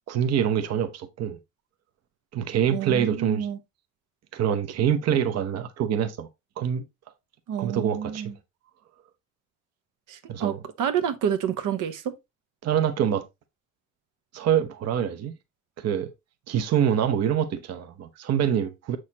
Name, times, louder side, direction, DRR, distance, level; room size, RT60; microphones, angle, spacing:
voice 1, 0.1-1.4 2.3-3.5 4.3-6.3 6.6-6.8 7.6-8.3 10.3-10.6 12.6-13.2 14.3-15.4 15.8-16.1 16.5-19.0, right 9 dB, 55° right, 0.8 m, -25 dB
voice 2, 2.7-3.6 7.5-8.3 10.1-12.1, right 8 dB, 85° right, 1.0 m, -28 dB
7.4 x 6.4 x 2.8 m
cardioid pair, 170°, 31 cm